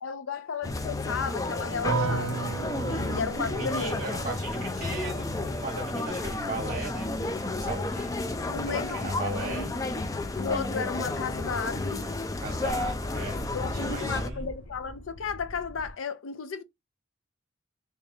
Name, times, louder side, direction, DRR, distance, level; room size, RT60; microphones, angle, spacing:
voice 1, 0.0-2.5 3.1-4.0 8.4-9.7 10.4-12.1 13.5-16.6, left 5 dB, 85° left, 0.5 m, -34 dB
sound 1, 0.6-14.3, left 2 dB, 15° left, 0.3 m, -32 dB
sound 2, 1.8-12.9 13.2-13.9, right 4 dB, 80° right, 0.6 m, -38 dB
voice 2, 2.9-3.2 3.5-8.2 8.7-9.7 12.4-13.4 13.7-14.5, right 2 dB, 40° right, 0.9 m, -37 dB
sound 3, 6.0-15.9, left 1 dB, 45° left, 1.0 m, -45 dB
3.3 x 2.9 x 3.1 m
head